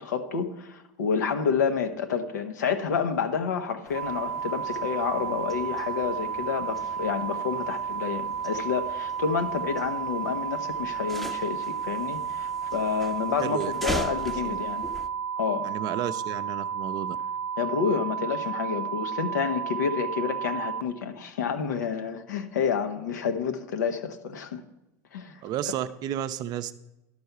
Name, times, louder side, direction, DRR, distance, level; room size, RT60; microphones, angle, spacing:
voice 1, 0.0-14.9 15.4-15.7 17.6-24.6 25.1-25.4, left 6 dB, 90° left, 7 dB, 1.0 m, -29 dB
sound 1, 3.8-15.1, right 1 dB, ahead, 0.8 m, -41 dB
sound 2, 3.9-20.8, right 7 dB, 85° right, 0.7 m, -32 dB
voice 2, 13.4-13.7 14.4-14.6 15.6-17.2 25.4-26.7, right 11 dB, 45° right, 12 dB, 0.6 m, -32 dB
11.5 x 4.6 x 6.7 m, 0.91 s
hypercardioid pair, 105°, 9 cm